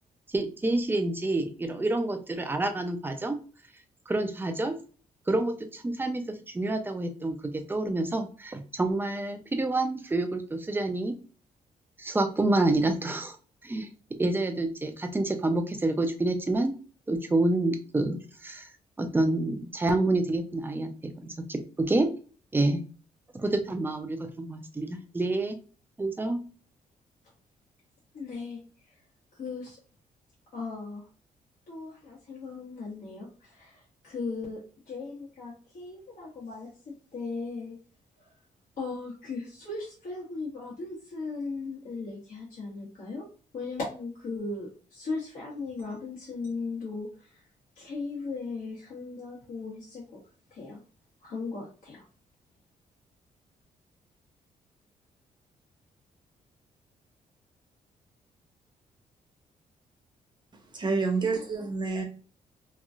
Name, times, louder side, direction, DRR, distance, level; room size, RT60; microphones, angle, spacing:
voice 1, 0.3-3.4 4.1-4.7 5.3-11.2 12.0-13.4 13.6-13.9 14.2-16.7 17.1-18.7 19.0-22.1 22.5-22.8 23.3-25.6 26.0-26.4, right 2 dB, 15° right, 6 dB, 0.5 m, -28 dB
voice 2, 28.1-28.6 29.3-29.8 30.5-31.1 31.7-37.7 38.2-38.3 38.8-43.3 43.5-47.4 47.8-50.2 50.5-50.8 51.2-52.0, left 3 dB, 65° left, -6 dB, 1.1 m, -37 dB
voice 3, 60.7-62.0, right 4 dB, 30° right, 2 dB, 0.8 m, -28 dB
3.0 x 2.5 x 2.4 m, 0.38 s
cardioid pair, 105°, 15 cm